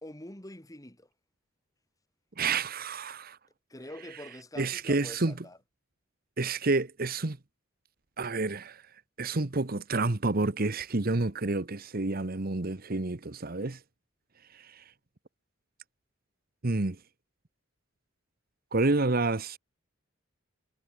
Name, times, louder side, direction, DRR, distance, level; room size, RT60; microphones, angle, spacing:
voice 1, 0.0-1.1 3.7-5.6, left 1 dB, 15° left, 2.8 m, -45 dB
voice 2, 2.4-3.4 4.6-5.4 6.4-7.4 8.2-8.8 9.2-13.8 14.5-14.8 16.6-17.0 18.7-19.6, right 3 dB, 50° right, 1.1 m, -29 dB
head